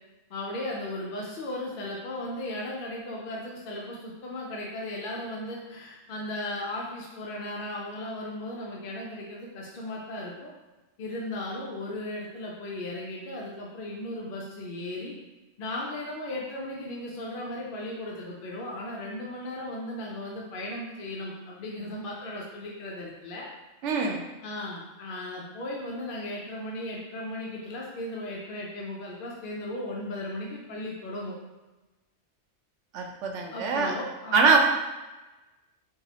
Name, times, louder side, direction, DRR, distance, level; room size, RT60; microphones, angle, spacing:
voice 1, 0.3-10.5 11.0-15.2 15.6-23.5 24.4-31.4 33.5-34.6, left 1 dB, 60° left, -3 dB, 0.6 m, -36 dB
voice 2, 23.8-24.2 32.9-33.9 34.3-34.6, right 4 dB, 80° right, 2 dB, 0.9 m, -23 dB
4.7 x 2.0 x 2.8 m, 1.1 s
omnidirectional pair, 1.2 m